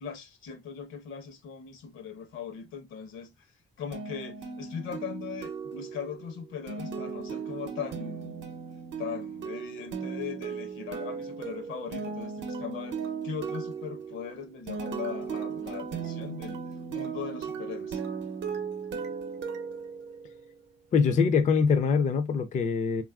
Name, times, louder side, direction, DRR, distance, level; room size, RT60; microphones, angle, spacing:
voice 1, 0.0-3.5 3.8-8.4 9.0-13.0 13.2-16.6 16.9-18.0, left 7 dB, 80° left, 0.8 m, -39 dB
sound 1, 3.9-20.6, right 5 dB, 65° right, 0.6 m, -37 dB
voice 2, 20.9-23.0, left 5 dB, 40° left, 0.4 m, -23 dB
3.1 x 2.4 x 2.3 m
cardioid pair, 90°, 20 cm